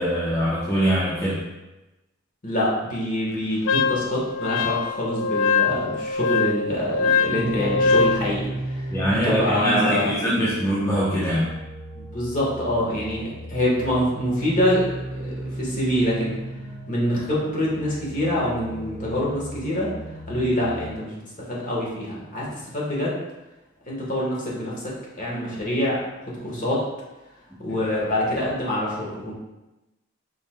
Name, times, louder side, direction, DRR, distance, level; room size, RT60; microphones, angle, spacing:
voice 1, 0.0-1.4 8.9-11.5, equal, 15° left, -8 dB, 0.8 m, -23 dB
voice 2, 2.4-10.1 11.9-16.4 16.9-19.9 20.3-21.2 21.5-23.2 23.9-24.9 25.2-26.0 26.3-26.8 27.6-29.3, left 1 dB, 40° left, -5 dB, 1.3 m, -25 dB
Wind instrument woodwind instrument, 3.7-8.2, left 4 dB, 70° left, 0.3 m, -23 dB
sound 1, 7.2-20.9, right 1 dB, 75° right, 0.8 m, -35 dB
5.4 x 4.3 x 2.2 m, 1.0 s
head